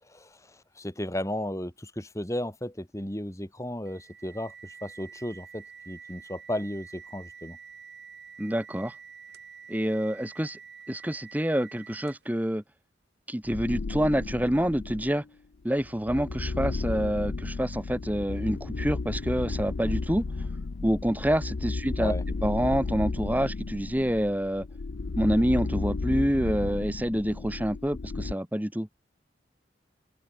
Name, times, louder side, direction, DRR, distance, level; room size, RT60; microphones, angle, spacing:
voice 1, 0.8-4.5 4.8-7.6 22.0-22.2, left 1 dB, 15° left, 4.3 m, -34 dB
sound 1, 3.9-12.4, right 6 dB, 60° right, 4.9 m, -48 dB
voice 2, 8.4-8.9 9.7-10.6 10.9-12.6 13.3-15.2 15.6-20.3 20.8-22.1 22.4-24.7 25.2-28.9, equal, 10° right, 1.3 m, -27 dB
sound 2, 13.5-15.2 15.8-28.3, left 3 dB, 75° left, 0.6 m, -33 dB
open air
head